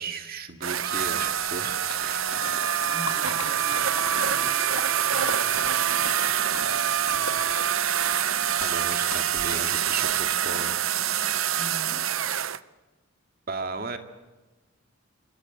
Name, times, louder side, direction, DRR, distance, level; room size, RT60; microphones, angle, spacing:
voice 1, 0.0-3.1 8.6-10.8 13.5-14.0, right 4 dB, 45° right, 6 dB, 2.2 m, -36 dB
sound 1, 0.6-12.6, right 10 dB, 75° right, 0.8 m, -26 dB
Splash splatter, 1.2-10.3, left 5 dB, 75° left, 2.1 m, -39 dB
voice 2, 2.8-7.3 11.6-12.1, equal, ahead, -3 dB, 6.3 m, -46 dB
28.0 x 25.0 x 7.9 m, 1.2 s
head